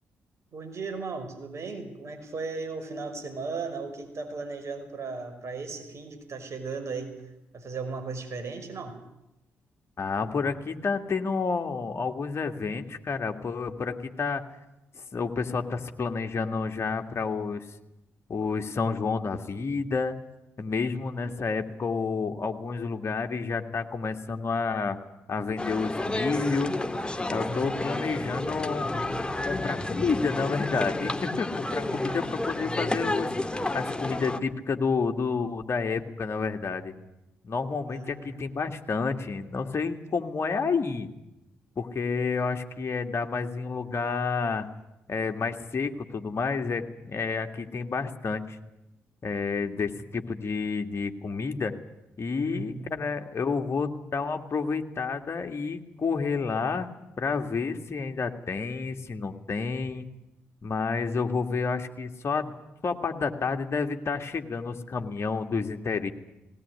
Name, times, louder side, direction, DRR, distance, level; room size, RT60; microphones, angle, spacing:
voice 1, 0.5-7.1 7.5-9.0 21.1-21.5 27.5-27.9 31.9-32.2 37.9-38.4 52.4-52.9, right 4 dB, 50° right, 6 dB, 5.5 m, -36 dB
voice 2, 10.0-14.4 14.9-17.6 18.3-20.1 20.6-25.0 25.3-26.7 27.3-28.9 29.5-33.3 33.7-36.9 37.4-41.1 41.8-44.7 45.1-48.6 49.2-51.7 52.2-56.9 57.2-60.1 60.6-62.6 62.8-66.1, left 4 dB, 45° left, 5 dB, 2.2 m, -30 dB
sound 1, 25.6-34.4, left 2 dB, 15° left, 1.8 m, -31 dB
19.0 x 18.0 x 9.7 m, 0.90 s
hypercardioid pair, 40°, 6 cm